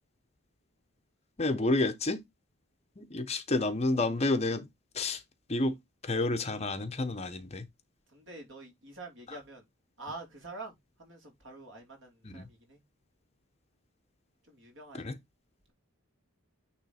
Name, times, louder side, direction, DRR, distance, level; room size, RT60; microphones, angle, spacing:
voice 1, 1.4-2.2 3.0-4.7 4.9-5.2 5.5-5.8 6.0-7.7 12.2-12.4 15.0-15.2, left 2 dB, 30° left, 0.7 m, -29 dB
voice 2, 8.1-9.7 10.0-10.7 11.0-12.8 14.4-15.1, right 2 dB, 55° right, 3.0 m, -46 dB
9.3 x 3.2 x 4.2 m
head